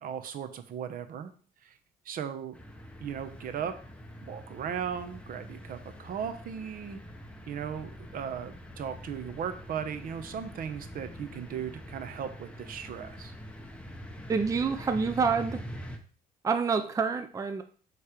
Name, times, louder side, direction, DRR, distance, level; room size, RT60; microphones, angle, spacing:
voice 1, 0.0-1.3 1.6-1.7 2.0-2.5 3.0-3.7 4.3-7.0 7.5-13.3, right 8 dB, 55° right, 10 dB, 0.9 m, -37 dB
sound 1, 2.5-16.0, equal, 5° left, 1.0 m, -45 dB
voice 2, 14.3-15.6 16.4-17.6, right 5 dB, 20° right, 8 dB, 0.5 m, -27 dB
7.3 x 3.3 x 5.0 m, 0.43 s
cardioid pair, 110°, 17 cm